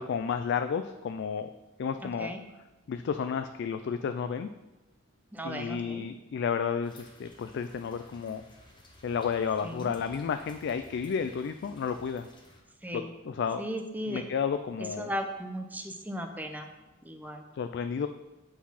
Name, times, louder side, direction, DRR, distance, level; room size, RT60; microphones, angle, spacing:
voice 1, 0.0-1.5 1.8-2.3 2.9-4.5 5.4-8.4 9.0-12.3 12.9-13.6 14.1-15.1 17.5-18.1, left 6 dB, 55° left, 9 dB, 0.3 m, -32 dB
voice 2, 2.0-2.4 5.3-6.1 9.6-10.0 12.8-13.1 13.6-14.2 14.8-16.7 17.0-17.4, equal, 10° right, 5 dB, 0.6 m, -36 dB
sound 1, 6.8-12.6, left 1 dB, 25° left, 1.0 m, -55 dB
8.5 x 4.1 x 5.6 m, 1.1 s
head